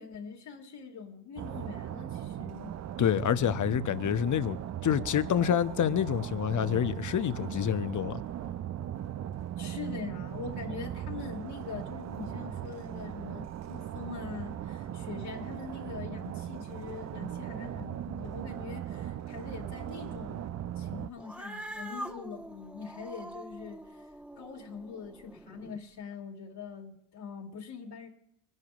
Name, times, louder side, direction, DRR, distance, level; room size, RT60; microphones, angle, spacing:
voice 1, 0.0-2.7 9.6-20.5 20.8-23.8 24.4-28.1, left 6 dB, 55° left, 2.5 m, -43 dB
sound 1, 1.4-21.1, right 10 dB, 35° right, 0.6 m, -38 dB
voice 2, 3.0-4.6 4.8-8.2, left 9 dB, 40° left, 0.9 m, -27 dB
Cat, 21.2-25.8, right 1 dB, 5° right, 1.2 m, -44 dB
25.5 x 10.5 x 2.5 m
hypercardioid pair, 50°, 48 cm